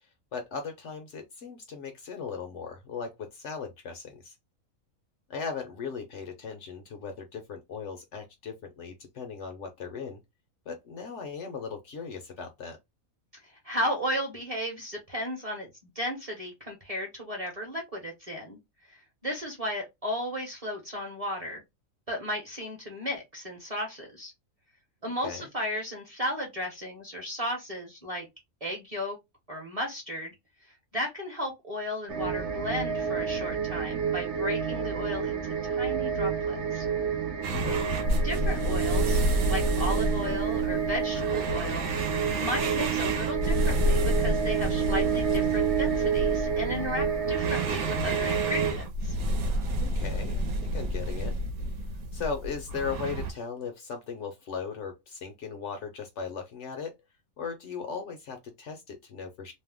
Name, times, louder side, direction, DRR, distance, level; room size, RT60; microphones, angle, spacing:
voice 1, 0.3-4.4 5.3-10.2 10.7-12.8 25.2-25.5 37.5-37.9 49.8-51.4 52.1-56.9 57.4-59.5, left 5 dB, 65° left, 0.8 m, -38 dB
voice 2, 13.6-15.7 15.9-18.6 19.2-21.6 22.1-24.3 25.0-28.3 28.6-29.2 29.5-30.3 30.9-36.8 38.2-39.2 39.5-41.9 42.4-49.2, left 1 dB, 30° right, 0.8 m, -34 dB
sound 1, 32.1-48.7, right 7 dB, 65° right, 0.7 m, -29 dB
sound 2, 37.4-53.3, equal, 85° right, 1.1 m, -30 dB
2.7 x 2.1 x 3.4 m
omnidirectional pair, 1.5 m